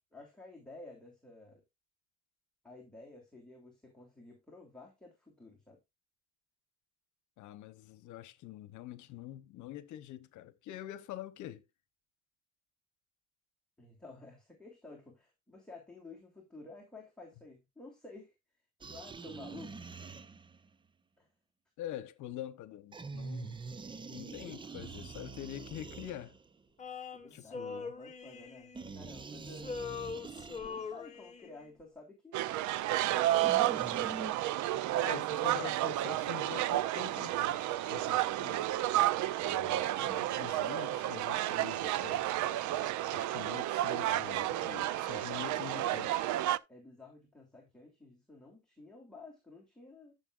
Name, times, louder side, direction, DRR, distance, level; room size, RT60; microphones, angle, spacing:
voice 1, 0.1-1.6 2.6-5.8 13.8-18.3 18.9-20.2 21.2-21.3 25.9-26.1 27.1-29.7 30.3-32.4 32.9-33.6 43.0-43.3 46.7-50.1, left 3 dB, 5° left, 3.0 m, -53 dB
voice 2, 7.4-11.6 21.8-23.6 24.1-26.3 27.3-27.9 35.0-38.7 39.4-42.4 43.1-46.3, left 12 dB, 65° left, 1.1 m, -45 dB
sound 1, 18.8-20.7 22.9-26.6 28.7-31.0 33.3-34.3, right 4 dB, 15° right, 0.5 m, -45 dB
Male singing, 26.8-29.2 29.5-31.7, left 5 dB, 20° left, 1.6 m, -42 dB
sound 2, 32.3-46.6, right 14 dB, 70° right, 0.6 m, -31 dB
13.5 x 6.9 x 2.5 m
cardioid pair, 150°, 31 cm